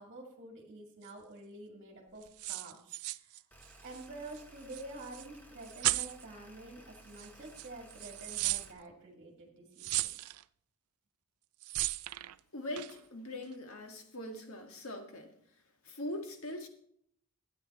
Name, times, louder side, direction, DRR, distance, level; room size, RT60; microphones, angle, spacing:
voice 1, 0.0-3.4 3.8-10.1, right 2 dB, 35° right, 0 dB, 2.0 m, -48 dB
sound 1, 1.0-1.1 2.2-4.1 4.3-4.4 4.7-5.3 5.6-6.2 7.1-7.3 7.6-8.7 9.8-10.4 11.6-12.4 12.8-13.0, right 18 dB, 75° right, 0.4 m, -35 dB
sound 2, 3.5-8.7, right 1 dB, 5° left, 1.3 m, -57 dB
voice 2, 12.5-15.3 15.8-16.7, left 1 dB, 70° left, 4 dB, 1.8 m, -41 dB
13.0 x 8.9 x 4.2 m, 0.68 s
head